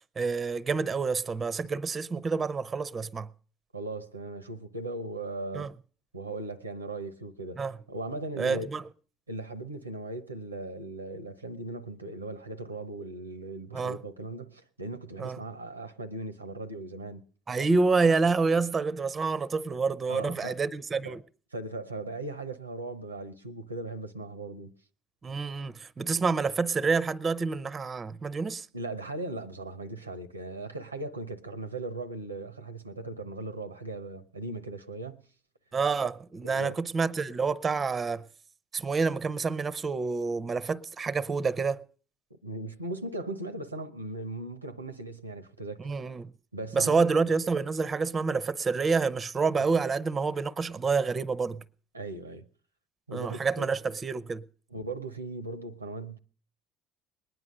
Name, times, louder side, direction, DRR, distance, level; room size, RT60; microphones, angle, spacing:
voice 1, 0.2-3.3 5.5-5.7 7.6-7.8 8.4-8.8 13.7-14.0 15.2-15.4 17.5-21.2 25.2-28.7 35.7-38.2 38.7-41.8 45.8-46.3 46.7-51.6 53.1-54.4, right 4 dB, 30° right, 0.6 m, -28 dB
voice 2, 3.7-5.7 6.1-8.7 9.3-17.2 20.1-20.6 21.0-21.2 21.5-24.7 28.7-35.2 36.4-36.8 42.3-45.9 46.5-47.1 49.6-49.7 51.9-52.5 53.1-53.7 54.7-56.2, right 2 dB, 90° right, 0.7 m, -38 dB
20.5 x 9.7 x 6.5 m
figure-of-eight pair, 60°, 0 cm